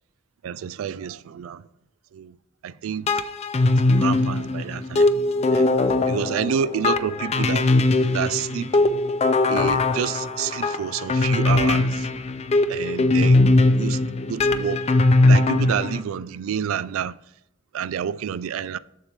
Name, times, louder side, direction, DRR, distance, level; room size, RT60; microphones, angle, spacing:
voice 1, 0.4-1.7 2.1-2.4 2.6-3.1 3.8-5.1 5.5-5.7 6.1-7.6 8.1-8.8 9.5-12.1 12.7-13.4 13.8-14.0 14.3-14.8 15.3-17.1 17.7-18.8, right 8 dB, 90° right, 0.3 m, -29 dB
sound 1, 3.1-16.0, left 2 dB, 30° left, 0.4 m, -20 dB
7.2 x 6.6 x 3.3 m
head